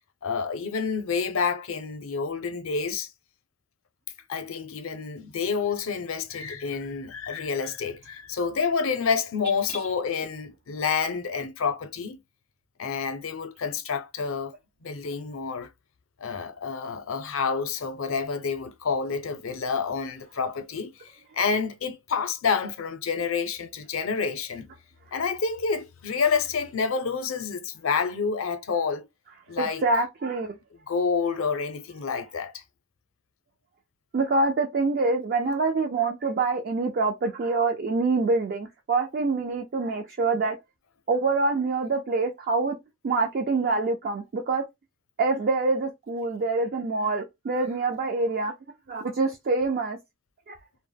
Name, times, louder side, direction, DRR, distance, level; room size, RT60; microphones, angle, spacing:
voice 1, 0.2-3.1 4.3-12.2 12.8-14.5 14.8-15.7 16.2-20.9 21.3-24.7 25.1-29.1 29.5-29.8 30.9-32.6, left 5 dB, 70° left, 0.5 m, -28 dB
voice 2, 29.6-30.6 34.1-40.6 41.1-42.8 43.0-44.6 45.2-48.5 48.9-50.0 50.5-50.6, right 3 dB, 45° right, 0.4 m, -25 dB
2.1 x 2.0 x 3.2 m
head